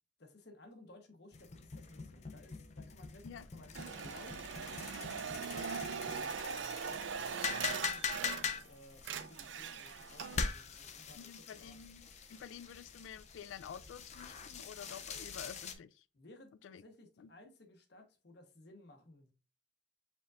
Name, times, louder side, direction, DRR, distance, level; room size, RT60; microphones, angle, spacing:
voice 1, 0.2-6.4 6.8-11.7 16.1-19.3, left 1 dB, 60° left, 1.0 m, -58 dB
sound 1, 1.3-15.7, left 5 dB, 35° left, 0.6 m, -43 dB
sound 2, 3.7-8.7 9.0-10.5, right 6 dB, 70° right, 0.4 m, -41 dB
voice 2, 11.1-16.0 16.6-16.8 17.2-17.3, left 8 dB, 85° left, 0.3 m, -50 dB
5.1 x 3.5 x 2.4 m
head